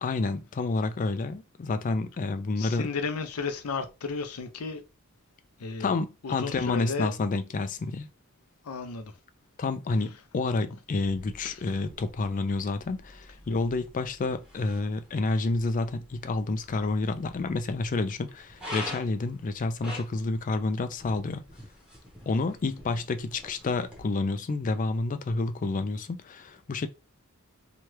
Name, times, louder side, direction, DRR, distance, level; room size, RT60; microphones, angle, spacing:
voice 1, 0.0-2.9 5.8-8.1 9.6-21.4 22.3-26.9, left 3 dB, 35° left, 0.4 m, -29 dB
voice 2, 2.6-4.8 5.6-7.1 8.6-9.1 11.4-11.6, left 4 dB, 85° left, 0.6 m, -34 dB
sound 1, 10.9-24.0, left 1 dB, 5° right, 0.9 m, -46 dB
2.9 x 2.3 x 3.1 m
head